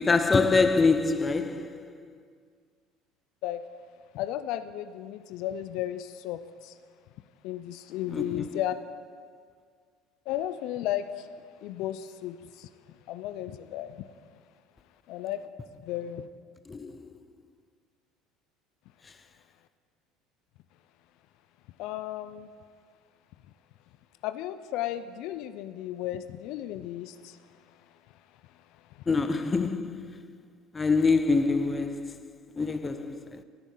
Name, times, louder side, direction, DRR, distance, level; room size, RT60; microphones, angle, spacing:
voice 1, 0.0-1.9 8.1-8.5 16.7-17.1 29.1-30.2 30.7-32.3 32.6-33.4, left 4 dB, 25° left, 0.6 m, -25 dB
voice 2, 4.1-6.8 7.4-8.8 10.3-11.3 11.6-12.7 13.1-14.0 15.1-15.4 15.8-16.3 21.8-22.5 24.2-27.4 27.7-27.8 28.7-29.0, left 12 dB, 65° left, 0.4 m, -34 dB
16.5 x 9.0 x 3.8 m
supercardioid pair, 90°, 0 cm